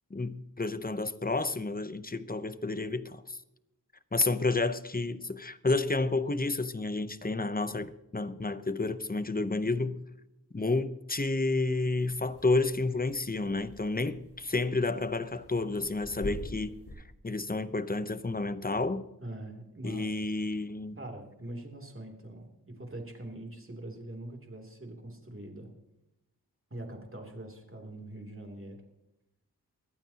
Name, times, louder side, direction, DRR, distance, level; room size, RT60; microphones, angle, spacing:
voice 1, 0.1-3.4 4.1-10.0 10.5-16.8 17.2-19.1 19.8-21.0, left 3 dB, 25° left, 0.8 m, -30 dB
sound 1, 12.0-16.9, equal, 85° left, 6.9 m, -46 dB
voice 2, 19.2-20.1 21.0-25.7 26.7-28.8, right 1 dB, 35° right, 3.0 m, -43 dB
22.0 x 14.5 x 2.9 m
wide cardioid pair, 55°, 38 cm